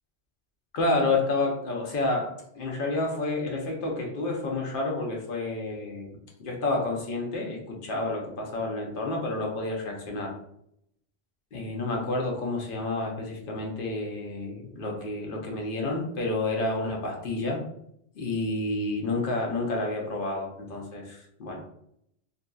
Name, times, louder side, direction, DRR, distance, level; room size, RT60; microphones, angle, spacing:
voice 1, 0.7-10.3 11.5-17.6 18.2-21.7, left 2 dB, 55° left, 0 dB, 0.7 m, -30 dB
2.7 x 2.6 x 2.2 m, 0.74 s
omnidirectional pair, 1.2 m